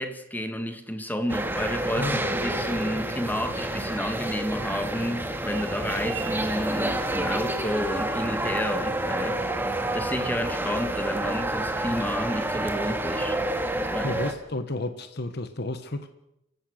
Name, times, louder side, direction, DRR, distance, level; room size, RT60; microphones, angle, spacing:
voice 1, 0.0-13.4 13.8-14.1, equal, 10° left, 2.0 m, -31 dB
sound 1, 1.3-14.3, right 1 dB, 10° right, 2.0 m, -29 dB
voice 2, 2.0-2.3 14.0-16.1, left 2 dB, 55° left, 1.3 m, -31 dB
sound 2, 4.0-6.4, right 6 dB, 80° right, 3.1 m, -41 dB
29.5 x 16.0 x 6.7 m
head